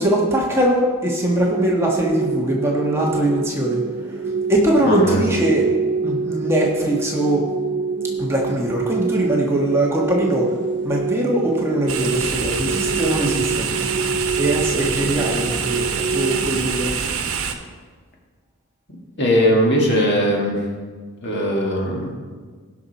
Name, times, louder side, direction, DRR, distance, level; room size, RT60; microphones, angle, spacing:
voice 1, 0.0-5.7 6.0-7.5 8.2-10.6 10.8-16.9, right 1 dB, 10° right, -3 dB, 1.4 m, -21 dB
sound 1, 1.4-16.7, right 4 dB, 50° right, 0.6 m, -26 dB
voice 2, 4.8-5.2 19.2-20.6 21.2-22.2, equal, 50° left, -1 dB, 2.1 m, -19 dB
sound 2, 11.9-17.5, right 6 dB, 80° right, 1.1 m, -26 dB
17.0 x 5.9 x 4.2 m, 1.5 s
head